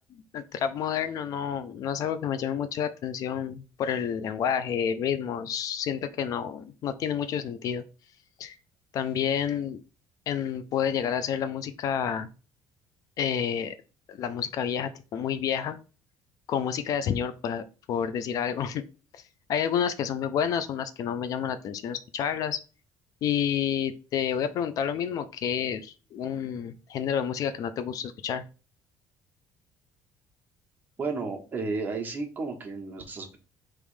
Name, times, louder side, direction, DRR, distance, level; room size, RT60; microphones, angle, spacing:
voice 1, 0.3-7.8 8.4-8.6 8.9-9.8 10.3-12.3 13.2-13.7 14.1-15.8 16.5-18.8 19.1-19.2 19.5-22.6 23.2-28.4, left 8 dB, 60° left, 12 dB, 0.4 m, -29 dB
voice 2, 31.0-33.4, right 3 dB, 25° right, 1 dB, 1.3 m, -33 dB
3.4 x 3.1 x 4.8 m, 0.34 s
cardioid pair, 115°, 7 cm